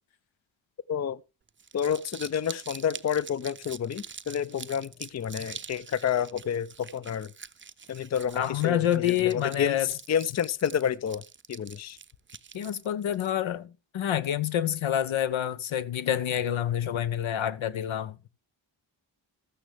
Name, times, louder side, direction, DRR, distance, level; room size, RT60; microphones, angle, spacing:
voice 1, 0.9-1.2 1.7-7.3 7.9-11.2 11.5-12.0, left 8 dB, 35° left, 0.5 m, -29 dB
Crumpling crinkling, 1.5-13.3, right 6 dB, 25° right, 0.5 m, -45 dB
voice 2, 8.3-9.9 12.5-18.3, left 10 dB, 80° left, 0.8 m, -28 dB
13.0 x 8.8 x 3.4 m
cardioid pair, 50°, 47 cm